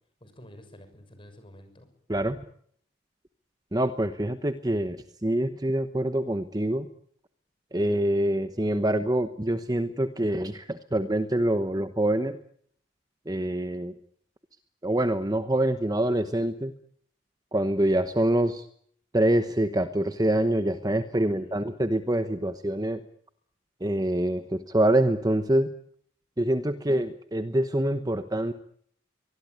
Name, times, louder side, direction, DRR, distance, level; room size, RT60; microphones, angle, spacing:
voice 1, 0.2-1.9 21.1-21.7, equal, 25° left, 8 dB, 6.5 m, -50 dB
voice 2, 2.1-2.4 3.7-6.9 7.7-12.4 13.3-13.9 14.8-16.7 17.5-18.7 19.1-23.0 23.8-25.7 26.4-28.5, right 1 dB, 20° right, 10 dB, 1.0 m, -25 dB
24.0 x 21.0 x 9.6 m, 0.65 s
head